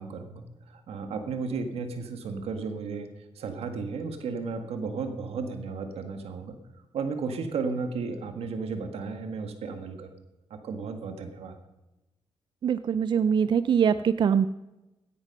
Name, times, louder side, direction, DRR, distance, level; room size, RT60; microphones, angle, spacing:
voice 1, 0.0-3.1 3.4-6.6 6.9-10.1 10.5-11.6, right 4 dB, 85° right, 7 dB, 1.8 m, -34 dB
voice 2, 12.6-14.5, right 7 dB, 50° right, 14 dB, 0.4 m, -23 dB
16.5 x 10.5 x 5.4 m, 1.0 s
cardioid pair, 120°, 10 cm